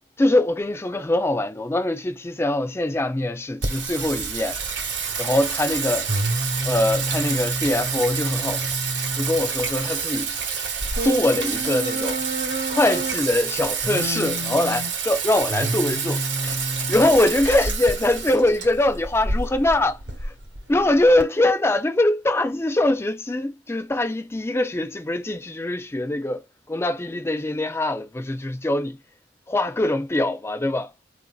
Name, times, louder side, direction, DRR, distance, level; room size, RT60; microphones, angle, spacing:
voice 1, 0.2-4.6 5.2-6.1 6.6-8.7 9.2-10.3 11.0-12.2 12.7-16.6 16.9-20.3 20.7-26.4 26.7-29.0 29.5-30.9, left 1 dB, 15° left, 0.4 m, -23 dB
Singing, 3.6-21.2, right 4 dB, 70° right, 0.9 m, -27 dB
3.6 x 2.6 x 2.3 m
head